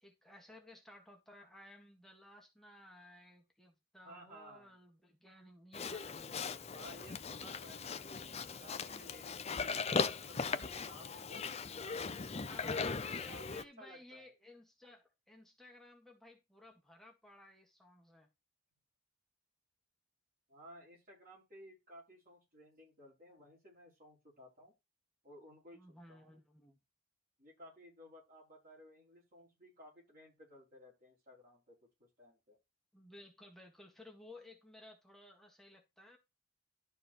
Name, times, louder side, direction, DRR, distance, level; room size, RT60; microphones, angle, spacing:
voice 1, 0.0-7.2 12.5-18.3 25.7-26.8 32.9-36.2, left 1 dB, ahead, 1.8 m, -57 dB
voice 2, 4.0-4.8 6.0-9.7 10.2-14.3 20.5-24.7 25.2-26.4 27.4-32.6, equal, 40° right, 5.2 m, -57 dB
Livestock farm animals working animals, 5.7-13.6, left 5 dB, 30° left, 0.6 m, -39 dB
12.5 x 4.5 x 4.6 m
head